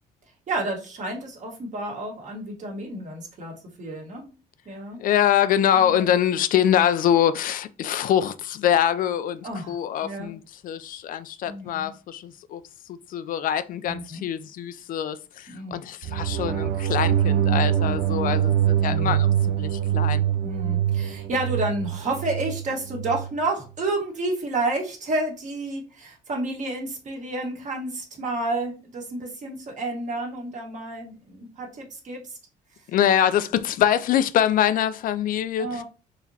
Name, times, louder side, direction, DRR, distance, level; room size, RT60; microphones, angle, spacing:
voice 1, 0.5-4.3 4.6-5.0 5.7-6.0 9.4-9.8 10.0-10.3 11.4-11.9 13.8-14.2 15.5-15.7 18.9-19.2 20.4-32.4 35.6-35.8, right 2 dB, 45° right, 1.5 m, -30 dB
voice 2, 5.0-12.6 13.1-20.2 32.9-35.8, left 10 dB, 55° left, 0.4 m, -24 dB
sound 1, 16.0-23.3, right 10 dB, 80° right, 0.4 m, -24 dB
3.9 x 2.9 x 2.7 m
cardioid pair, 110°, 17 cm